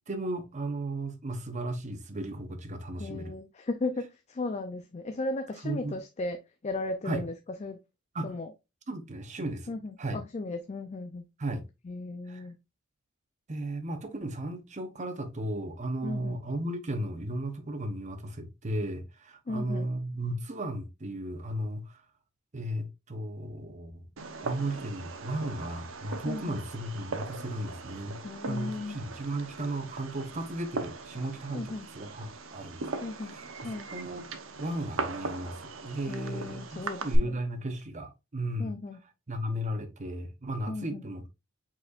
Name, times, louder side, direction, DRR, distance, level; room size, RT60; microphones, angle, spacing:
voice 1, 0.1-3.3 5.6-5.9 7.0-7.2 8.1-8.3 8.9-9.7 10.0-10.2 11.4-11.6 12.3-12.4 13.5-22.0 22.5-24.0 24.4-28.2 28.4-34.3 34.6-38.8 39.3-41.3, right 1 dB, 35° right, 0.8 m, -35 dB
voice 2, 3.0-7.3 7.6-7.8 8.2-8.5 9.7-11.3 11.8-12.6 16.0-16.4 19.5-19.9 26.2-26.6 28.2-29.0 31.5-31.9 33.0-33.4 33.6-33.9 36.1-37.3 38.6-39.0 40.7-41.0, left 2 dB, 35° left, 0.4 m, -36 dB
Fireworks, 24.2-37.2, right 3 dB, 75° right, 0.8 m, -39 dB
5.2 x 4.2 x 2.4 m
head